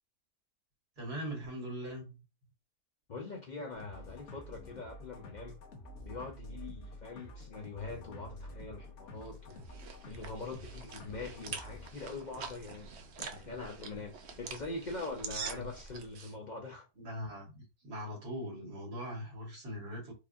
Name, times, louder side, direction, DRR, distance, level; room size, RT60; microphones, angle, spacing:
voice 1, 1.0-2.2 15.4-15.7 17.0-20.1, equal, 80° right, 2.2 m, -41 dB
voice 2, 3.1-5.6 6.1-9.6 10.1-12.9 13.2-16.9, left 3 dB, 85° left, 0.4 m, -43 dB
sound 1, 3.7-11.9, left 1 dB, 55° left, 1.0 m, -49 dB
sound 2, 9.2-16.3, right 5 dB, 65° right, 0.7 m, -45 dB
sound 3, 11.9-16.7, left 1 dB, 10° left, 1.1 m, -60 dB
4.7 x 2.4 x 2.6 m
omnidirectional pair, 1.7 m